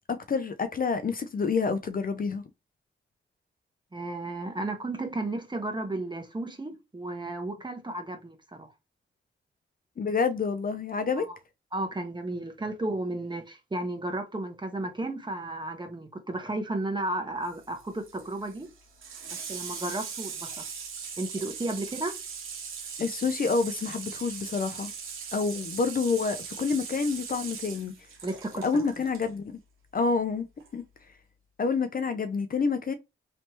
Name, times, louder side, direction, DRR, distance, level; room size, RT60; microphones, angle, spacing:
voice 1, 0.1-2.4 10.0-11.2 23.0-24.9 25.3-27.9 28.6-29.6 29.9-30.5 30.7-30.8 31.6-32.9, left 4 dB, 45° left, 0.5 m, -28 dB
voice 2, 3.9-8.7 11.2-11.4 11.7-18.7 19.5-20.6 21.2-22.1 28.2-28.9, right 2 dB, 20° right, 1.1 m, -33 dB
Water tap faucet / Sink (filling or washing), 17.4-29.3 30.6-30.7, right 6 dB, 85° right, 0.9 m, -40 dB
3.3 x 2.9 x 2.9 m
cardioid pair, 60°, 20 cm